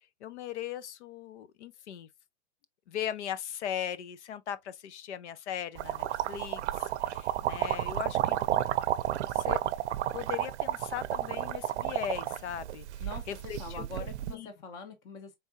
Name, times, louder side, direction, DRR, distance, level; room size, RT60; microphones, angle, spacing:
voice 1, 0.2-2.1 2.9-8.4 9.2-9.6 10.1-12.9 13.3-13.9 14.3-14.5, left 10 dB, 90° left, 0.8 m, -38 dB
sound 1, 5.7-14.3, right 13 dB, 85° right, 0.6 m, -32 dB
voice 2, 13.6-15.3, left 3 dB, 10° left, 0.4 m, -43 dB
4.6 x 3.5 x 2.6 m
supercardioid pair, 165°, 33 cm